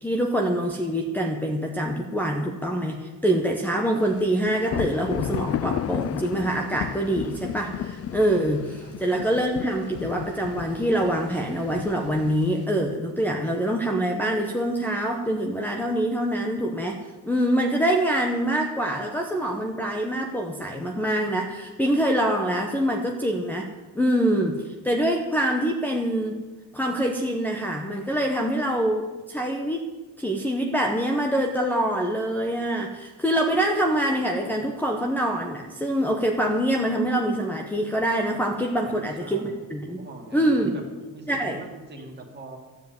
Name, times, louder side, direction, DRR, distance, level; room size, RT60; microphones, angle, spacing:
voice 1, 0.0-26.4 26.7-29.8 30.2-40.0 40.3-40.8 41.3-41.6, right 1 dB, 5° left, 2 dB, 0.9 m, -25 dB
sound 1, 4.1-12.6, left 10 dB, 40° left, 0.5 m, -33 dB
voice 2, 8.8-9.3 38.9-40.8 41.1-42.6, right 2 dB, 30° right, 2 dB, 2.2 m, -43 dB
13.0 x 7.3 x 9.3 m, 1.3 s
cardioid pair, 165°, 37 cm